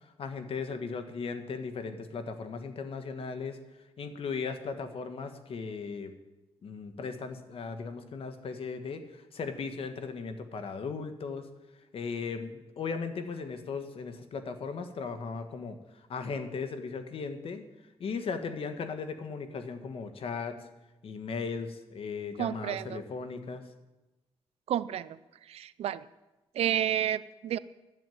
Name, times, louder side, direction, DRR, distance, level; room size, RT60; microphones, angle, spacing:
voice 1, 0.0-3.6 4.0-6.1 6.6-11.5 11.9-17.6 18.0-20.6 21.0-23.6, left 5 dB, 65° left, 8 dB, 1.4 m, -37 dB
voice 2, 22.4-23.0 24.7-25.2 25.5-26.0 26.5-27.6, right 10 dB, 80° right, 16 dB, 0.5 m, -30 dB
11.5 x 7.2 x 9.3 m, 1.1 s
cardioid pair, 90°, 10 cm